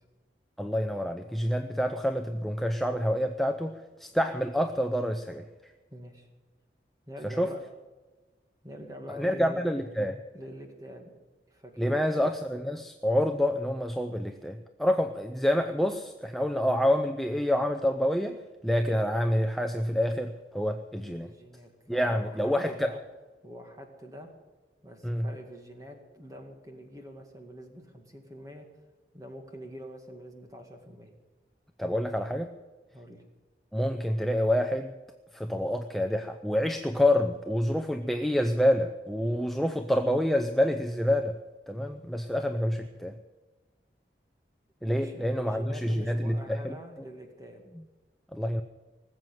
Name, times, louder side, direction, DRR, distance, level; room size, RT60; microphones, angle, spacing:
voice 1, 0.6-5.4 7.2-7.5 9.2-10.2 11.8-18.4 18.6-21.3 21.9-22.9 25.0-25.3 31.8-32.5 33.7-34.9 35.3-41.4 41.7-43.1 44.8-46.7 48.3-48.6, equal, ahead, 6 dB, 0.5 m, -27 dB
voice 2, 5.9-6.3 7.1-7.6 8.6-9.7 10.3-11.1 11.5-12.1 21.2-23.0 23.4-24.3 24.8-28.7 29.1-31.1 32.9-33.2 45.0-47.6, equal, 20° right, 4 dB, 2.0 m, -45 dB
19.5 x 7.8 x 9.1 m, 1.3 s
head